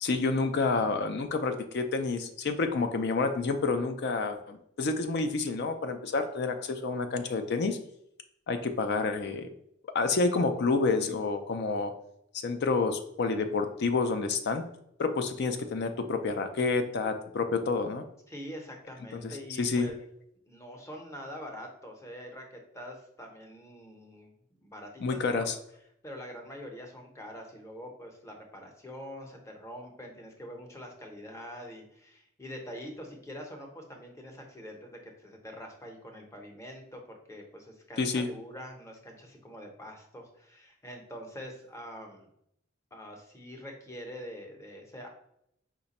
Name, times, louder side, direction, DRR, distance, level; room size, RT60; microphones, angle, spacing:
voice 1, 0.0-7.8 8.5-9.5 9.9-11.9 12.4-14.6 15.0-18.0 19.1-19.9 25.0-25.5 38.0-38.3, left 4 dB, 55° left, 8 dB, 0.4 m, -29 dB
voice 2, 18.3-20.0 20.4-24.3 24.6-25.5 26.0-42.3 42.9-45.1, equal, 15° left, 2 dB, 0.7 m, -44 dB
4.9 x 2.2 x 4.0 m, 0.75 s
head